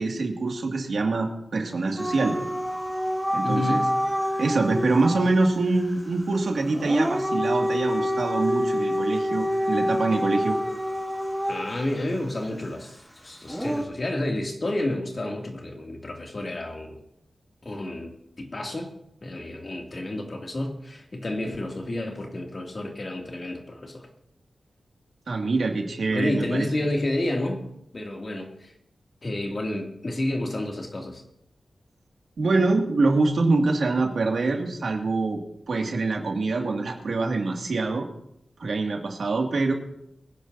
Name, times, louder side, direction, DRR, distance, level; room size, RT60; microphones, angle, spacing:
voice 1, 0.0-2.4 3.3-3.8 4.4-10.6 25.3-26.7 32.4-35.4 35.7-38.1 38.6-39.7, right 3 dB, 75° right, 1 dB, 2.1 m, -25 dB
Dog / Siren, 2.0-5.3 6.7-11.9 13.5-13.8, equal, ahead, 1.3 m, -27 dB
voice 2, 3.4-3.9 11.5-17.0 17.6-19.0 19.2-24.1 26.1-27.6 27.9-28.7 29.2-31.2, left 1 dB, 45° left, 2 dB, 2.4 m, -30 dB
23.5 x 10.5 x 2.7 m, 0.77 s
cardioid pair, 60°, 0 cm